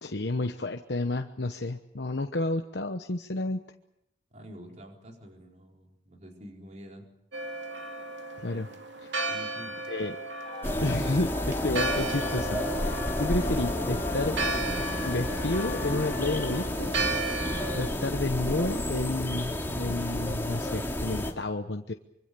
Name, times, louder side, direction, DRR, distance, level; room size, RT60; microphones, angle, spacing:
voice 1, 0.0-3.6 8.4-8.7 9.9-10.2 10.8-14.4 15.0-16.9 17.7-21.9, left 2 dB, 65° left, 5 dB, 1.1 m, -31 dB
voice 2, 4.3-7.1 8.5-8.6 9.3-9.8, equal, 40° right, 1 dB, 4.6 m, -47 dB
Church bell, 7.3-17.9, right 2 dB, 80° right, 2.4 m, -35 dB
sound 1, 10.4-16.7, left 4 dB, 35° left, 1.6 m, -41 dB
sound 2, 10.6-21.3, left 1 dB, 15° left, 2.7 m, -31 dB
25.0 x 24.5 x 6.9 m, 0.82 s
head